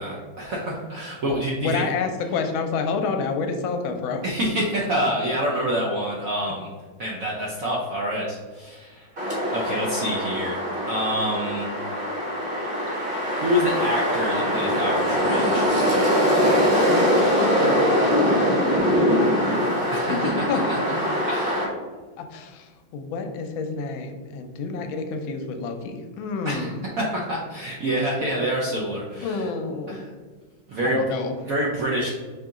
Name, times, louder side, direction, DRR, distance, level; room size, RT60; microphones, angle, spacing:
voice 1, 0.0-1.8 4.2-6.7 7.0-9.1 9.5-10.6 10.9-11.7 13.4-15.7 19.9-20.8 21.3-21.7 26.4-26.7 27.0-29.5 29.9-30.1 30.7-31.0 31.5-32.1, equal, 65° right, -3 dB, 0.8 m, -27 dB
voice 2, 1.3-4.2 17.6-19.6 20.1-20.7 22.2-26.8 29.2-30.0 30.8-31.3, left 4 dB, 80° left, 5 dB, 1.4 m, -29 dB
sound 1, 9.2-21.7, equal, 35° right, 1.1 m, -22 dB
5.2 x 2.8 x 3.5 m, 1.4 s
omnidirectional pair, 2.2 m